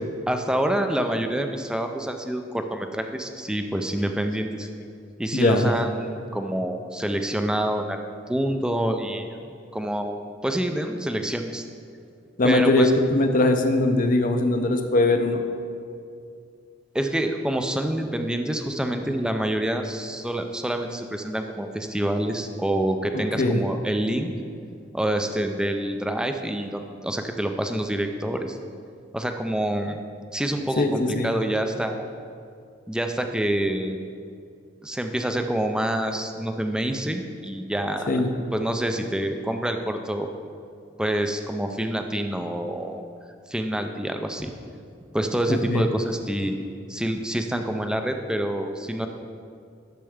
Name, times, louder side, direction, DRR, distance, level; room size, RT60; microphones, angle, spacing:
voice 1, 0.3-4.7 5.2-9.4 9.7-11.7 12.4-12.9 16.9-24.3 24.9-28.6 29.1-30.0 30.3-32.1 32.9-34.0 34.8-38.2 38.5-40.3 41.0-43.0 43.5-44.5 45.1-46.6 46.9-49.1, right 1 dB, 5° right, 5 dB, 0.4 m, -27 dB
voice 2, 5.3-5.7 12.4-15.4 23.1-23.7 30.8-31.3 38.1-38.3 45.5-45.8, left 2 dB, 45° left, 6 dB, 0.6 m, -21 dB
12.0 x 6.7 x 3.5 m, 2.4 s
head